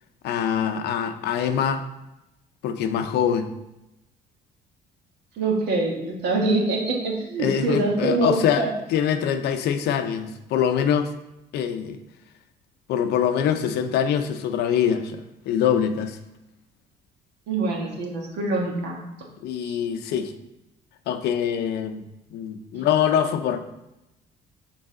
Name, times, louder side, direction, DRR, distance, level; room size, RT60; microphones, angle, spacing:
voice 1, 0.2-1.8 2.6-3.5 7.4-8.6 8.9-11.1 11.5-12.0 12.9-16.2 19.4-20.3 21.1-22.0 22.3-23.6, left 8 dB, 75° left, 8 dB, 0.6 m, -24 dB
voice 2, 5.4-8.7 17.5-19.0 19.6-19.8, right 2 dB, 80° right, -1 dB, 1.5 m, -24 dB
6.4 x 4.0 x 3.7 m, 0.92 s
cardioid pair, 110°, 17 cm